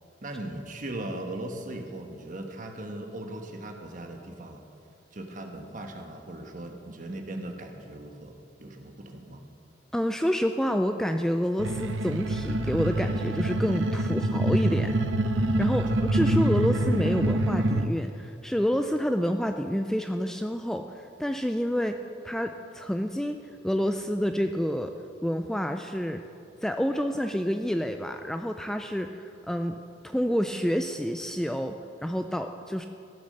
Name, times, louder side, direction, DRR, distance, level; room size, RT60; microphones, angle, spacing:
voice 1, 0.2-4.6 5.1-9.4 15.7-15.8, right 1 dB, 45° right, 3 dB, 1.3 m, -39 dB
voice 2, 9.9-15.0 15.3-22.0 22.2-23.4 23.6-24.9 25.2-26.2 26.6-29.8 30.0-32.9, equal, 5° left, 6 dB, 0.3 m, -28 dB
sound 1, 11.6-17.9, right 1 dB, 85° right, 0.7 m, -26 dB
15.0 x 7.1 x 6.6 m, 2.6 s
head